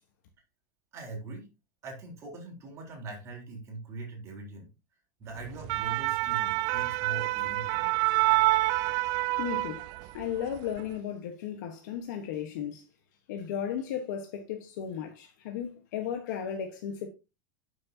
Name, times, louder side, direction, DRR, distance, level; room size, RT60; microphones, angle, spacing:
voice 1, 0.9-1.5 1.8-4.7 5.2-7.9, right 3 dB, 30° right, 3.9 m, -41 dB
sound 1, 5.4-10.2 10.6-10.8, right 20 dB, 45° right, 0.4 m, -27 dB
voice 2, 9.4-12.9 13.3-17.1, left 8 dB, 70° left, 1.3 m, -35 dB
11.0 x 6.4 x 2.8 m
supercardioid pair, 155°, 10 cm